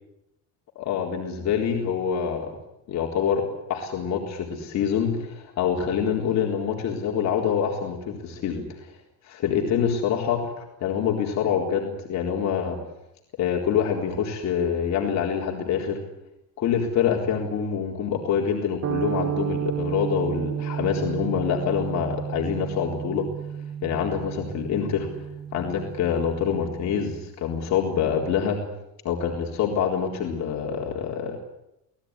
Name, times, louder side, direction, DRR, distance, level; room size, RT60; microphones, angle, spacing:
voice 1, 0.8-2.5 2.9-3.4 3.7-8.9 9.2-12.8 13.4-16.0 16.6-23.3 23.8-25.1 25.5-28.6 29.0-31.4, left 7 dB, 50° left, 0 dB, 4.0 m, -26 dB
sound 1, 18.8-27.2, right 9 dB, 45° right, 1.2 m, -32 dB
27.0 x 18.5 x 9.9 m, 0.88 s
cardioid pair, 160°, 35 cm